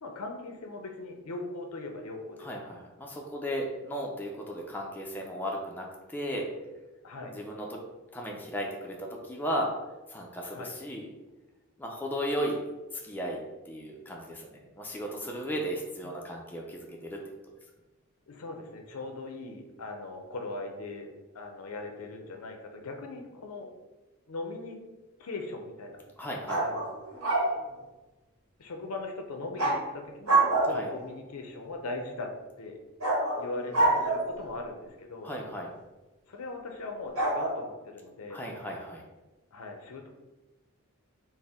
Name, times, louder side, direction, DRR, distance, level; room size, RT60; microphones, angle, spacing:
voice 1, 0.0-2.5 7.0-7.3 10.5-10.7 15.4-15.6 16.0-16.1 18.3-23.7 24.3-24.8 25.2-26.0 26.6-26.9 28.6-32.8 33.4-35.3 36.3-38.4 39.5-40.1, left 2 dB, 90° left, 3 dB, 0.6 m, -40 dB
voice 2, 2.4-6.5 7.2-7.8 8.1-9.7 10.1-11.1 11.8-12.6 13.0-13.4 13.7-17.2 26.2-26.6 30.7-30.9 35.2-35.7 38.3-39.0, equal, 10° left, -1 dB, 0.4 m, -35 dB
sound 1, 26.5-27.6 29.6-29.8 30.2-31.0 33.0-34.4 37.2-37.5, right 2 dB, 80° right, 1.2 m, -26 dB
4.2 x 2.1 x 3.5 m, 1.1 s
head